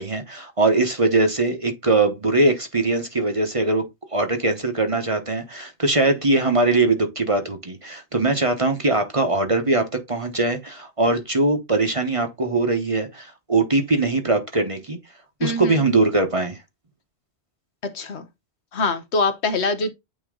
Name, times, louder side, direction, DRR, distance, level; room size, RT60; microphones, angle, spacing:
voice 1, 0.0-3.8 4.1-15.0 15.4-16.6, right 2 dB, 30° right, 1.1 m, -21 dB
voice 2, 15.4-15.8 17.8-18.3 18.7-19.9, left 3 dB, 70° left, 1.3 m, -24 dB
8.7 x 3.0 x 3.7 m
omnidirectional pair, 1.2 m